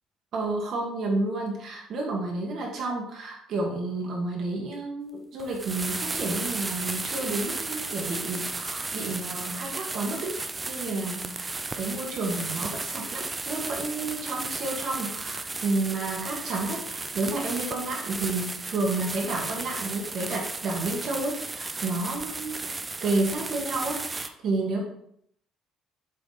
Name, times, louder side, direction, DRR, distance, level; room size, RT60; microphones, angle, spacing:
voice 1, 0.3-10.4 10.7-22.6 23.0-24.8, right 2 dB, 40° right, -1 dB, 1.5 m, -31 dB
sound 1, 5.4-24.3, right 3 dB, 15° right, 0.4 m, -34 dB
7.8 x 5.0 x 4.0 m, 0.69 s
cardioid pair, 175°, 0 cm